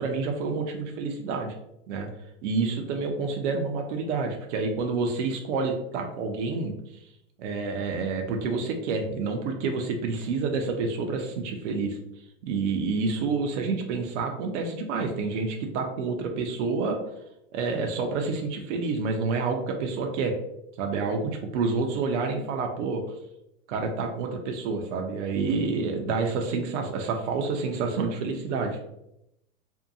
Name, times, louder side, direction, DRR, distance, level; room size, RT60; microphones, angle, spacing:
voice 1, 0.0-1.5 1.9-2.1 2.4-6.7 7.4-12.0 12.5-17.0 17.5-20.4 20.8-23.0 23.7-28.8, right 4 dB, 60° right, 3 dB, 0.6 m, -28 dB
2.6 x 2.1 x 2.6 m, 0.81 s
hypercardioid pair, 110°, 40 cm